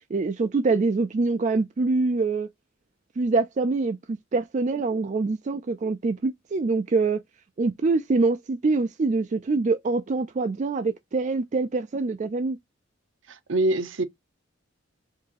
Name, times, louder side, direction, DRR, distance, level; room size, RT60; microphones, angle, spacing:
voice 1, 0.1-2.5 3.2-7.2 7.6-12.6, right 3 dB, 35° right, 0.4 m, -25 dB
voice 2, 13.3-14.0, right 2 dB, 65° right, 0.7 m, -24 dB
4.6 x 2.6 x 2.9 m
head